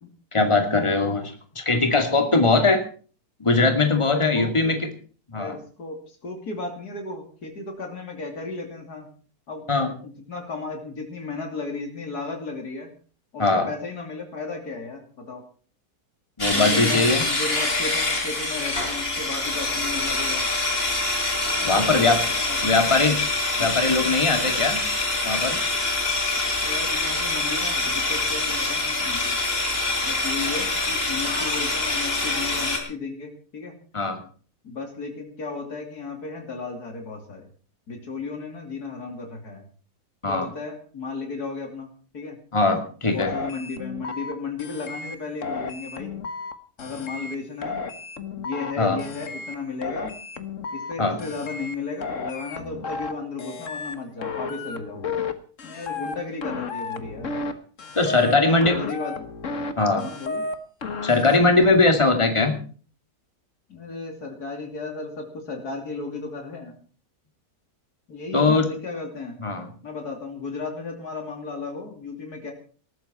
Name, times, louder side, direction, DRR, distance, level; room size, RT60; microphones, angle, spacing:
voice 1, 0.3-2.8 3.4-4.8 5.3-5.5 9.7-9.9 13.4-13.7 16.4-17.2 21.6-22.2 22.6-23.2 23.6-24.8 25.2-25.6 33.9-34.2 40.2-40.5 42.5-43.3 48.8-49.0 51.0-51.2 58.0-58.8 59.8-60.1 61.0-62.6 68.3-68.7 69.4-69.7, left 3 dB, 20° left, 5 dB, 2.5 m, -20 dB
voice 2, 4.0-4.8 5.3-9.1 9.5-9.7 10.0-12.9 13.3-15.4 16.5-20.5 21.6-22.9 23.6-23.8 26.6-29.3 30.0-33.8 34.6-37.4 37.9-39.6 40.3-42.4 43.1-46.2 46.8-47.9 48.4-50.1 50.7-55.0 55.6-57.4 58.1-59.1 60.0-60.4 63.7-66.8 68.1-69.4 69.8-72.5, left 4 dB, 90° left, 3 dB, 3.4 m, -34 dB
sound 1, 16.4-32.8, left 2 dB, 40° left, 4.2 m, -25 dB
sound 2, 43.2-44.3 44.6-45.1 45.4-46.5 46.8-47.3 47.6-48.7 49.0-49.5 49.8-50.9 51.2-51.7 52.0-53.1 53.4-53.9 54.2-55.3 55.6-56.1 56.4-57.5 57.8-58.3 58.6-59.7 60.0-60.5 60.8-61.7, left 4 dB, 55° left, 1.7 m, -33 dB
19.5 x 14.0 x 4.4 m, 0.41 s
omnidirectional pair, 1.6 m